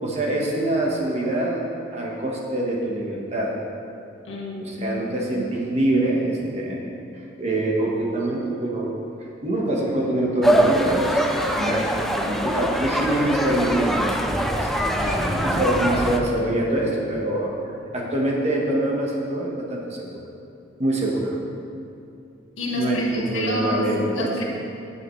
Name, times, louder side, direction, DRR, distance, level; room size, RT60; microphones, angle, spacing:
voice 1, 0.0-3.5 4.6-6.9 7.4-8.9 9.4-14.2 14.5-14.7 15.3-17.5 17.9-20.2 20.8-21.4 22.7-24.3, right 1 dB, 35° right, -2 dB, 1.4 m, -24 dB
voice 2, 4.2-5.1 14.9-15.5 22.6-24.4, left 1 dB, 85° left, -2 dB, 1.8 m, -29 dB
sound 1, 10.4-16.2, equal, ahead, 0.4 m, -23 dB
17.0 x 5.8 x 3.3 m, 2.6 s
head